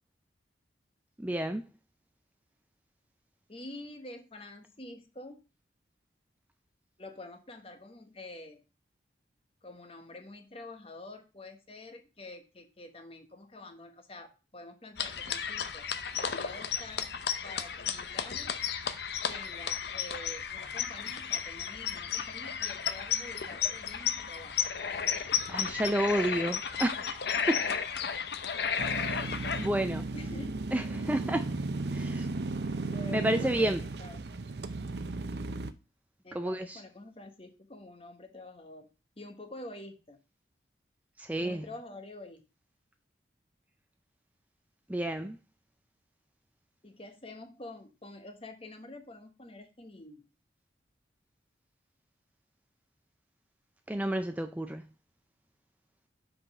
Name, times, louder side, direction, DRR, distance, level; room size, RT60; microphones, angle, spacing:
voice 1, 1.2-1.7 25.5-27.2 27.5-27.7 29.0-29.3 29.6-30.1 30.7-31.6 31.9-32.3 33.1-33.8 36.3-36.8 41.2-41.7 44.9-45.4 53.9-54.9, right 1 dB, 10° right, 0.4 m, -30 dB
voice 2, 3.5-5.4 7.0-8.6 9.6-17.1 17.4-18.5 19.2-24.6 30.1-30.6 32.9-34.2 36.2-38.9 39.2-40.2 41.4-42.4 46.8-50.3, left 2 dB, 30° left, 1.1 m, -47 dB
sound 1, 15.0-29.7, left 7 dB, 65° left, 0.6 m, -33 dB
sound 2, 28.8-35.7, right 3 dB, 65° right, 0.6 m, -35 dB
6.1 x 4.9 x 5.4 m
head